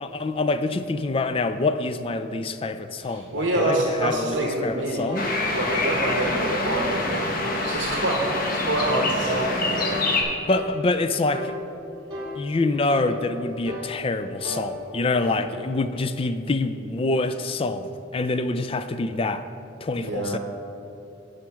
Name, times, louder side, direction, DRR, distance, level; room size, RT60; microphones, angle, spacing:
voice 1, 0.0-5.3 10.5-11.5 12.3-19.5 19.8-20.4, left 2 dB, 30° left, 11 dB, 0.4 m, -26 dB
voice 2, 3.0-5.1 5.5-7.3 7.6-9.6 19.9-20.4, right 1 dB, 65° right, -1 dB, 0.9 m, -26 dB
sound 1, 3.5-3.8 4.3-4.5 5.1-5.3 5.9-6.1 6.6-6.9 7.4-7.7 8.2-8.5 9.0-9.2 9.8-10.0 10.5-10.8 11.3-11.5 12.1-12.4 12.9-13.1 13.7-13.9 14.4-14.7 15.2-15.4, equal, 25° right, 1.8 m, -33 dB
sound 2, 5.1-10.2, left 2 dB, 50° left, 1.1 m, -26 dB
10.5 x 5.1 x 5.7 m, 2.8 s
head